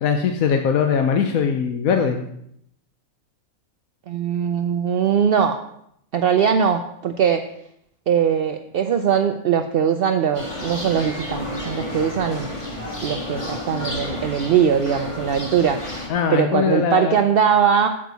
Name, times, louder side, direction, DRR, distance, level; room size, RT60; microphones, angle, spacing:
voice 1, 0.0-2.2 16.1-17.2, left 7 dB, 75° left, 5 dB, 1.1 m, -21 dB
voice 2, 4.1-5.6 6.1-7.4 8.1-12.5 13.0-15.8 16.3-17.9, right 7 dB, 70° right, 6 dB, 0.5 m, -20 dB
sound 1, 10.3-16.1, left 1 dB, 20° left, 1.6 m, -31 dB
9.1 x 7.5 x 4.0 m, 0.74 s
omnidirectional pair, 1.5 m